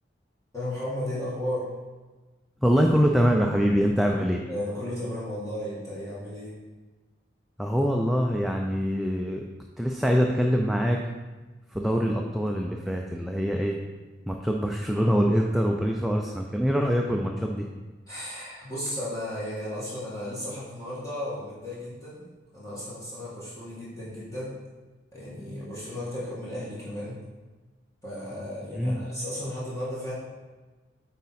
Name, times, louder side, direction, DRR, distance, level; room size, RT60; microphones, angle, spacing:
voice 1, 0.5-1.7 4.3-6.5 11.8-12.1 18.1-22.3 22.5-24.6 25.1-27.2 28.0-30.1, left 1 dB, 20° left, -9 dB, 1.7 m, -34 dB
voice 2, 2.6-4.4 7.6-9.4 9.8-11.0 11.7-13.8 14.3-17.7 28.8-29.1, equal, ahead, 1 dB, 0.3 m, -24 dB
8.4 x 4.2 x 4.1 m, 1.3 s
head